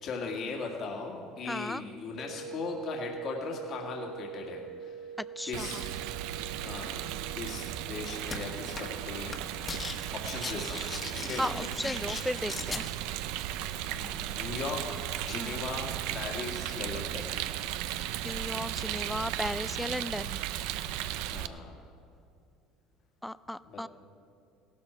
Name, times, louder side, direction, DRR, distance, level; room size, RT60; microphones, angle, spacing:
voice 1, 0.0-5.0 5.4-6.0 6.6-7.0 7.3-9.4 9.7-10.9 11.3-11.4 12.0-12.2 13.8-17.3 21.2-21.8 23.7-23.9, left 4 dB, 50° left, 0 dB, 1.9 m, -39 dB
voice 2, 1.5-1.8 5.4-5.8 11.4-12.9 15.4-15.6 18.2-20.4 23.2-23.9, left 1 dB, 5° left, 16 dB, 0.3 m, -35 dB
sound 1, 2.2-17.1, right 6 dB, 25° right, 1.2 m, -47 dB
Rain, 5.5-21.5, right 12 dB, 75° right, 0.5 m, -36 dB
sound 2, 8.3-8.4 8.8-9.0 9.3-10.0 10.2-12.8, left 4 dB, 25° left, 1.4 m, -38 dB
16.5 x 12.5 x 4.5 m, 2.5 s
supercardioid pair, 110°, 0 cm